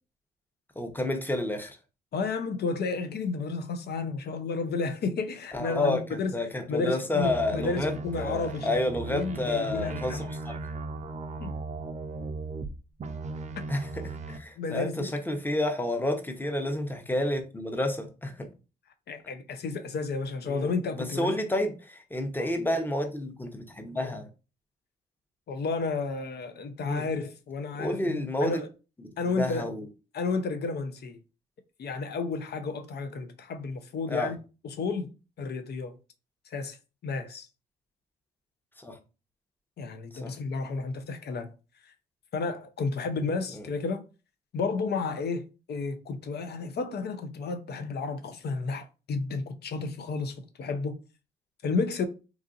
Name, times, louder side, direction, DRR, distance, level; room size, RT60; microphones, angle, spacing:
voice 1, 0.8-1.8 5.5-10.6 13.7-18.5 20.5-24.3 26.8-27.1 27.8-28.6 29.0-29.9 34.1-34.3 38.8-39.0 40.1-40.3 43.5-43.7, left 1 dB, 10° left, 0.8 m, -30 dB
voice 2, 2.1-6.3 6.7-10.2 11.4-11.5 14.6-15.1 19.1-21.3 22.4-22.5 25.5-28.7 29.2-29.7 30.1-31.2 31.8-34.4 34.6-35.1 35.4-35.9 36.5-36.8 37.0-37.5 39.8-41.5 41.8-41.9 42.3-44.0 44.5-45.4 45.7-50.9 51.6-52.1, left 4 dB, 55° left, 0.6 m, -32 dB
sound 1, 7.2-12.7 13.0-14.4, right 3 dB, 35° right, 0.5 m, -37 dB
2.9 x 2.4 x 2.4 m
hypercardioid pair, 50°, 20 cm